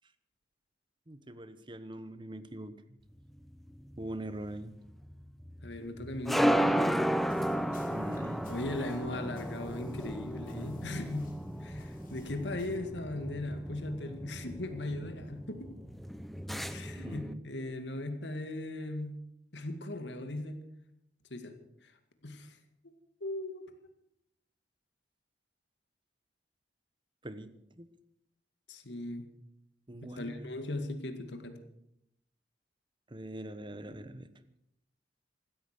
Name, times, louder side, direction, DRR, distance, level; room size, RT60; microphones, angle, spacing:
voice 1, 1.1-2.8 4.0-4.7 7.9-8.5 12.5-12.6 17.0-17.4 27.2-27.9 29.9-30.5 33.1-34.3, right 1 dB, 25° right, 12 dB, 1.1 m, -43 dB
sound 1, 3.3-17.3, equal, ahead, 0.6 m, -34 dB
voice 2, 5.6-7.0 8.5-11.3 11.6-15.7 16.7-19.2 19.5-20.6 21.3-21.5 21.8-21.9 22.2-22.6 22.8-22.9 23.2-23.6 28.7-29.3 30.2-31.6, left 1 dB, 80° left, 7 dB, 2.1 m, -38 dB
sound 2, 7.1-12.8, left 2 dB, 50° left, 3.7 m, -54 dB
16.0 x 13.0 x 6.7 m, 0.79 s
head